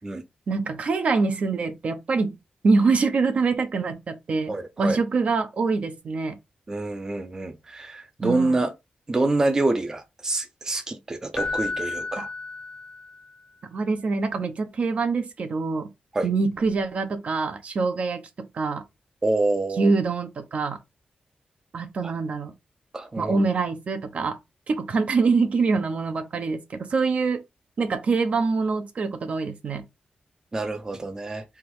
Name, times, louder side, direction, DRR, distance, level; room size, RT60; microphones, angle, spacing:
voice 1, 0.5-2.4 2.6-6.4 8.2-8.6 10.7-10.8 12.2-12.3 13.7-15.9 16.2-18.3 18.5-18.8 19.8-20.8 21.7-22.5 23.2-24.4 24.7-27.4 27.8-29.8, right 4 dB, 55° right, 0.8 m, -25 dB
voice 2, 4.5-5.0 6.7-8.7 9.1-12.3 16.1-16.3 19.2-19.9 22.0-22.1 22.9-23.4 30.5-31.4, right 2 dB, 20° right, 0.6 m, -26 dB
Keyboard (musical), 11.3-13.3 16.6-16.7, left 3 dB, 30° left, 0.4 m, -32 dB
3.6 x 3.0 x 4.7 m
wide cardioid pair, 150°, 3 cm